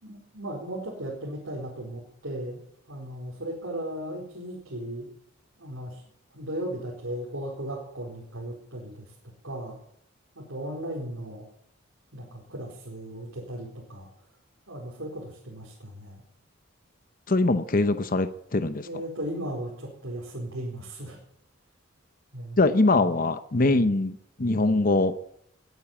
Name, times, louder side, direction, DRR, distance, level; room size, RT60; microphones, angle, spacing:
voice 1, 0.0-2.6 2.9-5.1 5.6-6.0 6.3-9.1 9.4-9.8 10.3-11.4 12.1-14.1 14.7-16.2 18.9-21.2 22.3-22.6 22.9-23.2, right 1 dB, 75° right, -4 dB, 4.7 m, -36 dB
voice 2, 17.3-18.9 22.6-25.3, left 2 dB, 45° left, 10 dB, 0.8 m, -23 dB
21.0 x 9.3 x 7.3 m, 0.72 s
head